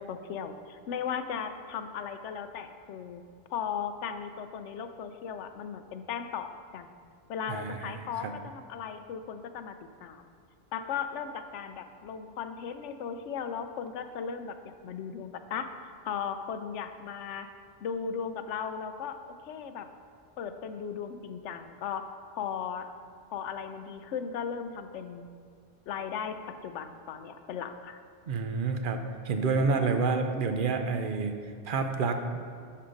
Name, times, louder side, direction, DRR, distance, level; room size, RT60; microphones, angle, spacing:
voice 1, 0.0-3.2 3.5-6.9 7.3-9.8 10.0-10.2 10.7-14.6 14.8-15.7 16.1-17.5 17.8-19.2 19.5-19.9 20.4-22.0 22.3-22.9 23.3-25.3 25.9-26.4 26.6-28.0, left 7 dB, 80° left, 9 dB, 0.9 m, -36 dB
voice 2, 7.5-8.3 28.3-31.3 31.6-32.2, right 4 dB, 55° right, 7 dB, 0.7 m, -29 dB
10.0 x 6.6 x 3.8 m, 2.1 s
omnidirectional pair, 1.2 m